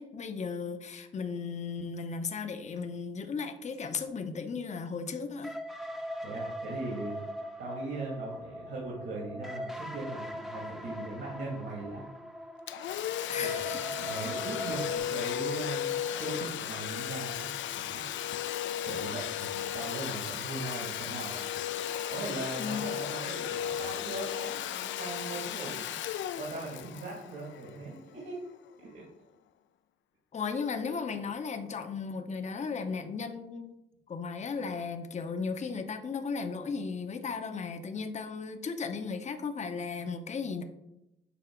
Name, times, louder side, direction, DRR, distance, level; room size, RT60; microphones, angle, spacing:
voice 1, 0.0-5.5 13.3-13.8 22.6-22.9 30.3-33.7 34.1-40.6, left 5 dB, 35° left, 7 dB, 0.7 m, -35 dB
sound 1, 5.4-15.0, equal, ahead, 0.7 m, -40 dB
voice 2, 6.2-7.2 7.6-12.0 13.4-18.1 18.8-21.4 22.1-25.9 26.3-28.4 28.8-29.0, right 2 dB, 55° right, -3 dB, 1.9 m, -39 dB
Domestic sounds home sounds, 12.7-28.1, left 10 dB, 70° left, 0.4 m, -35 dB
7.0 x 2.8 x 5.8 m, 0.89 s
cardioid pair, 90°, 20 cm